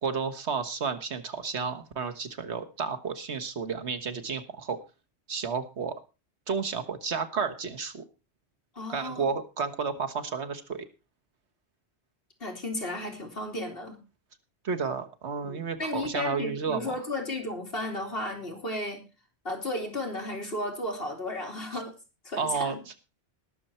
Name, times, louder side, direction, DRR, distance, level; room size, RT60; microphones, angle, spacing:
voice 1, 0.0-4.8 5.3-6.0 6.5-8.1 8.9-10.8 14.6-16.9 21.7-21.8 22.4-22.9, right 5 dB, 85° right, 8 dB, 1.6 m, -32 dB
voice 2, 8.7-9.3 12.4-14.0 15.4-19.0 19.4-21.9 22.2-22.8, left 1 dB, 60° left, 2 dB, 3.2 m, -34 dB
20.0 x 6.8 x 4.3 m, 0.30 s
omnidirectional pair, 1.1 m